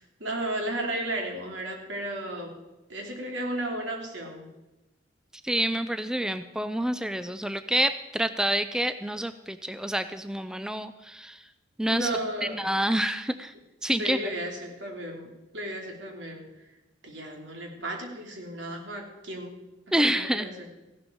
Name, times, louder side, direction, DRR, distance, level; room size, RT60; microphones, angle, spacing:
voice 1, 0.0-2.5 2.9-4.5 11.9-12.6 13.8-16.5 17.0-19.6 19.9-20.7, right 1 dB, 70° right, 1 dB, 3.0 m, -34 dB
voice 2, 5.4-11.4 11.8-12.1 12.5-13.5 13.8-14.2 19.9-20.5, right 1 dB, 5° right, 11 dB, 0.4 m, -28 dB
15.5 x 12.0 x 4.5 m, 1.0 s
head